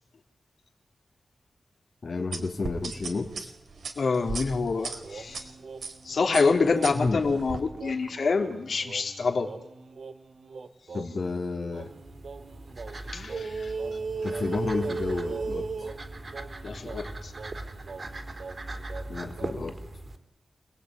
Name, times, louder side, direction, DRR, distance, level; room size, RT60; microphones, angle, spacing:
voice 1, 2.0-3.5 6.9-7.2 10.9-11.9 14.2-15.9 19.1-19.8, left 3 dB, 55° left, 1 dB, 2.8 m, -31 dB
sound 1, 2.3-5.4 5.8-6.0 6.3-7.6, right 4 dB, 85° right, 4.5 m, -36 dB
voice 2, 4.0-5.5 6.0-9.5 13.1-13.7 16.6-17.3, left 4 dB, 70° left, 3 dB, 3.9 m, -27 dB
sound 2, 5.0-11.3 11.7-19.8, right 4 dB, 65° right, 2.9 m, -39 dB
sound 3, 11.7-20.2, right 2 dB, 40° right, 3.9 m, -40 dB
30.0 x 20.5 x 9.8 m, 0.82 s
wide cardioid pair, 120°, 0 cm